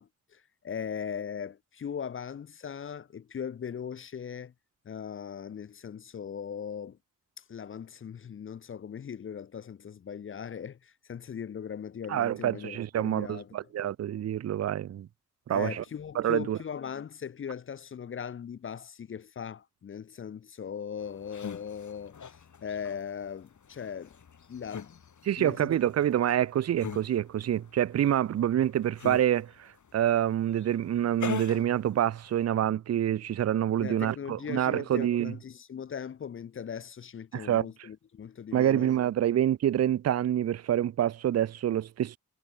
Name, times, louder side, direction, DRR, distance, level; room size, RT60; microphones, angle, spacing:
voice 1, 0.0-4.5 4.8-7.0 7.4-13.5 15.5-24.2 24.5-25.0 25.4-25.7 33.8-38.9, left 7 dB, 40° left, 0.4 m, -39 dB
voice 2, 12.1-15.1 15.5-15.8 16.2-16.6 25.3-35.3 37.3-37.7 38.5-42.2, right 11 dB, 50° right, 0.4 m, -27 dB
sound 1, 21.0-32.4, left 6 dB, 60° left, 1.8 m, -43 dB
cardioid pair, 65°, 33 cm